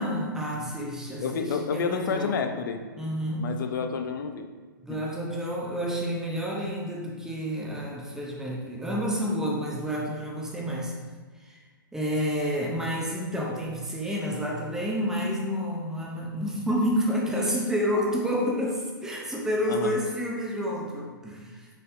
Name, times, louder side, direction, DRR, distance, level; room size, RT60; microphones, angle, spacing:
voice 1, 0.0-2.4 3.0-3.5 4.8-10.9 11.4-11.6 11.9-21.7, equal, 5° right, -2 dB, 0.5 m, -29 dB
voice 2, 1.2-2.8 3.4-4.5 4.9-5.0 19.7-20.0, left 5 dB, 65° left, 7 dB, 0.4 m, -30 dB
4.1 x 4.0 x 2.4 m, 1.4 s
hypercardioid pair, 140°, 12 cm